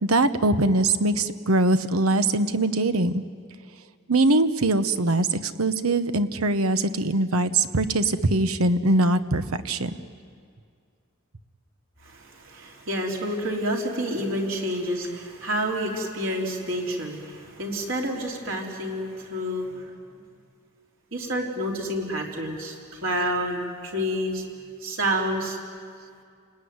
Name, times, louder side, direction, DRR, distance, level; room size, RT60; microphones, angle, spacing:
voice 1, 0.0-3.2 4.1-9.9, right 2 dB, 85° right, 11 dB, 1.2 m, -22 dB
voice 2, 12.0-19.9 21.1-24.4 24.8-25.6, equal, 65° right, -1 dB, 4.0 m, -29 dB
29.0 x 19.5 x 9.7 m, 2.2 s
head